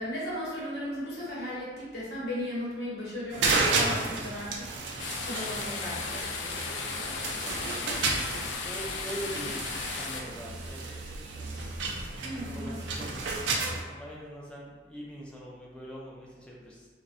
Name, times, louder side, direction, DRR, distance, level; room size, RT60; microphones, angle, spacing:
voice 1, 0.0-3.5 3.7-4.7 5.2-6.1 12.2-12.8, left 1 dB, 65° left, -6 dB, 0.8 m, -36 dB
sound 1, 3.3-13.8, right 3 dB, 70° right, 0.3 m, -32 dB
sound 2, 5.0-10.2, left 4 dB, 80° left, 0.3 m, -35 dB
voice 2, 5.8-11.6 12.3-16.9, equal, 5° left, -4 dB, 0.4 m, -44 dB
2.5 x 2.1 x 2.4 m, 1.4 s
head